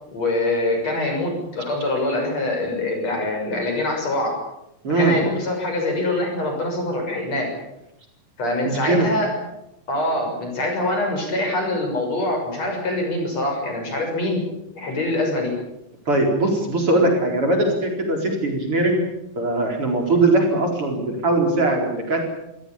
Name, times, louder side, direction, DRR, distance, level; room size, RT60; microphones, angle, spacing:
voice 1, 0.1-4.4 5.0-7.5 8.4-9.3 9.9-14.4 14.8-15.5 20.0-20.2, left 1 dB, 45° left, 2 dB, 7.5 m, -24 dB
voice 2, 4.8-5.2 8.6-9.1 16.1-19.0 19.4-22.2, right 2 dB, 40° right, 1 dB, 5.1 m, -20 dB
27.0 x 16.5 x 8.7 m, 0.86 s
omnidirectional pair, 4.0 m